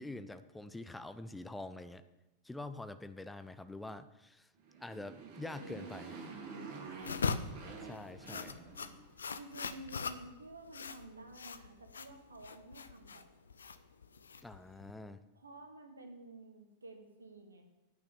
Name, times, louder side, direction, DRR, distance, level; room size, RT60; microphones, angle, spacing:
voice 1, 0.0-2.0 2.4-4.5 4.8-6.2 7.8-8.7 14.4-15.2, left 2 dB, 5° left, 11 dB, 0.6 m, -46 dB
Motorcycle, 4.6-9.2, right 4 dB, 50° right, 3.0 m, -48 dB
voice 2, 5.4-7.0 9.3-13.3 15.3-17.6, right 2 dB, 75° right, 5 dB, 1.6 m, -52 dB
sound 1, 7.0-14.9, left 5 dB, 70° left, 0.6 m, -41 dB
9.7 x 5.9 x 8.4 m, 1.0 s
figure-of-eight pair, 90°, 0 cm